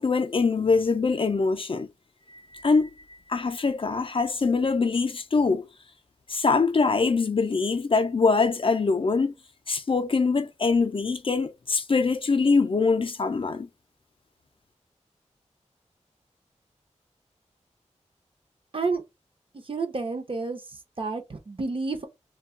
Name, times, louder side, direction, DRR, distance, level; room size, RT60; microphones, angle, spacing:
voice 1, 0.0-1.9 2.3-2.9 3.3-5.7 6.3-9.3 9.7-13.7, left 4 dB, 45° left, 0.4 m, -23 dB
voice 2, 19.7-20.6 21.0-22.0, right 4 dB, 45° right, 0.6 m, -29 dB
2.2 x 2.2 x 3.6 m
wide cardioid pair, 70°, 12 cm